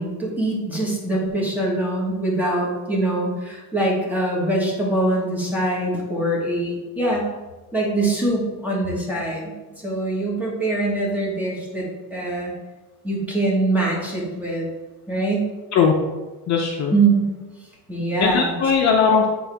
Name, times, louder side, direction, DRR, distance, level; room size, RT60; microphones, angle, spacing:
voice 1, 0.0-7.3 7.7-9.5 9.8-12.5 13.0-14.7 15.1-15.5 16.9-17.2 17.9-18.6, right 2 dB, 5° right, -5 dB, 1.5 m, -23 dB
voice 2, 16.5-16.9 18.2-19.3, left 6 dB, 45° left, 1 dB, 0.6 m, -18 dB
8.0 x 3.7 x 3.4 m, 1.2 s
cardioid pair, 155°, 40 cm